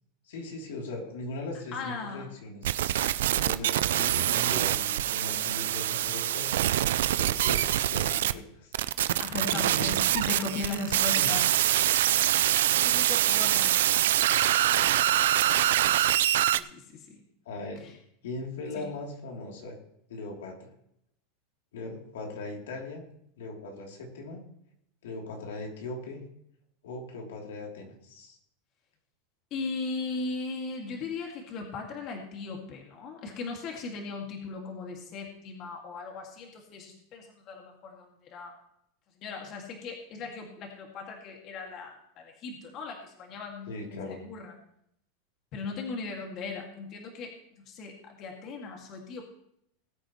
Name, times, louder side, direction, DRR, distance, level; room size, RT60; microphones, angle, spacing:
voice 1, 0.3-2.6 3.2-6.5 7.2-8.7 9.5-9.9 10.7-11.3 17.4-17.9 18.2-19.7 20.1-20.7 21.7-23.1 23.4-24.4 25.0-26.2 26.8-28.4 43.7-44.2, left 2 dB, 85° left, 0 dB, 3.3 m, -39 dB
voice 2, 1.7-2.3 9.2-11.4 12.4-13.7 16.5-17.2 17.8-17.9 18.8-18.9 29.5-38.5 39.2-44.6 45.5-47.3 47.7-49.3, left 4 dB, 40° left, 1 dB, 2.3 m, -38 dB
sound 1, 2.6-8.3 8.7-16.6, right 12 dB, 85° right, 0.5 m, -25 dB
20.0 x 8.5 x 3.2 m, 0.73 s
supercardioid pair, 135°, 0 cm